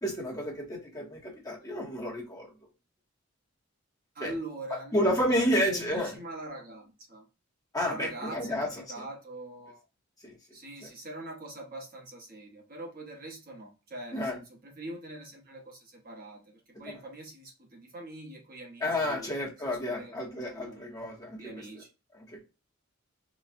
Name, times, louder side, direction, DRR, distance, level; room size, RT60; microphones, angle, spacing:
voice 1, 0.0-2.5 4.2-4.3 4.7-6.1 7.7-9.0 10.2-10.3 10.8-10.9 14.1-14.4 18.8-21.6 22.3-22.4, equal, 15° left, 0.9 m, -31 dB
voice 2, 4.1-7.2 7.8-9.8 10.5-19.3 19.7-20.1 20.5-20.8 21.4-21.9, right 1 dB, 45° right, 1.0 m, -43 dB
3.9 x 2.2 x 2.5 m
head